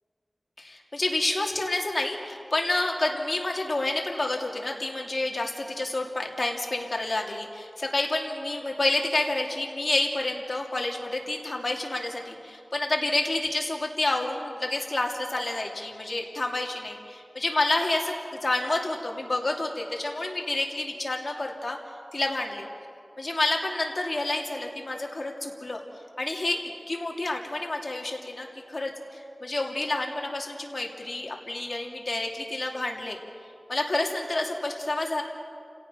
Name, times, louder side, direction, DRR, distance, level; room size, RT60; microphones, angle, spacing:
voice 1, 0.6-21.8 22.1-22.7 23.2-25.8 26.2-26.6 26.9-33.2 33.7-35.2, left 2 dB, 50° left, 1 dB, 2.7 m, -29 dB
29.5 x 17.5 x 5.7 m, 2.4 s
wide cardioid pair, 55°, 0 cm